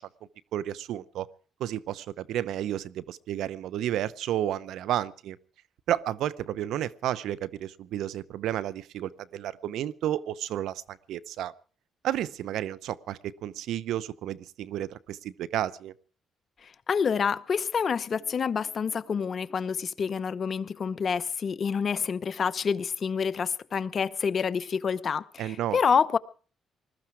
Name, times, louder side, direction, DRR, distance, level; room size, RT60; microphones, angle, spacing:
voice 1, 0.5-1.3 1.6-5.4 5.9-11.5 12.0-15.9 25.4-25.8, right 11 dB, 80° right, 0.8 m, -32 dB
voice 2, 16.6-26.2, left 6 dB, 45° left, 0.9 m, -28 dB
20.5 x 13.5 x 4.8 m
cardioid pair, 90°, 0 cm